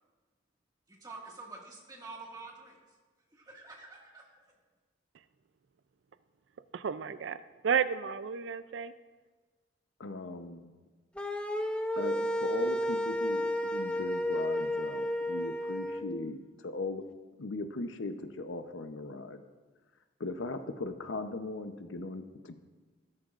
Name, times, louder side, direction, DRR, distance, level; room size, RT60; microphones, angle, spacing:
voice 1, 0.9-2.8 3.3-4.2, right 3 dB, 20° right, -2 dB, 1.9 m, -47 dB
voice 2, 6.7-7.4 7.6-8.9, right 7 dB, 80° right, 14 dB, 0.4 m, -31 dB
voice 3, 10.0-10.7 12.0-16.4 16.6-17.0 17.4-19.4 20.2-22.5, left 2 dB, 90° left, 8 dB, 0.8 m, -38 dB
sound 1, 11.2-16.0, equal, 5° left, 0.6 m, -32 dB
14.0 x 13.5 x 2.5 m, 1.3 s
head